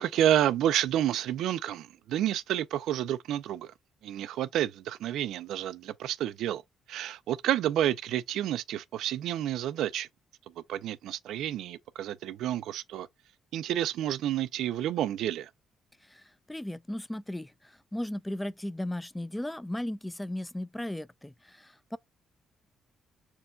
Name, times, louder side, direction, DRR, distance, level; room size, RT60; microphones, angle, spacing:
voice 1, 0.0-3.7 4.0-6.6 6.9-10.1 10.6-13.1 13.5-15.5, right 11 dB, 80° right, 0.3 m, -29 dB
voice 2, 16.5-22.0, left 1 dB, 10° left, 0.3 m, -36 dB
4.5 x 2.3 x 3.7 m
cardioid pair, 90°, 0 cm